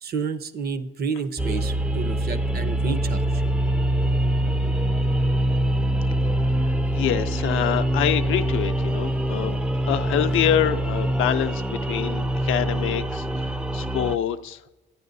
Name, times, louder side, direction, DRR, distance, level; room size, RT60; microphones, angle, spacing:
voice 1, 0.0-3.4, right 5 dB, 50° right, 13 dB, 0.6 m, -30 dB
sound 1, 1.4-14.2, right 1 dB, 5° right, 0.4 m, -24 dB
voice 2, 6.3-9.6 9.8-14.6, left 11 dB, 85° left, 9 dB, 0.5 m, -26 dB
10.5 x 9.2 x 2.6 m, 1.0 s
cardioid pair, 90°, 20 cm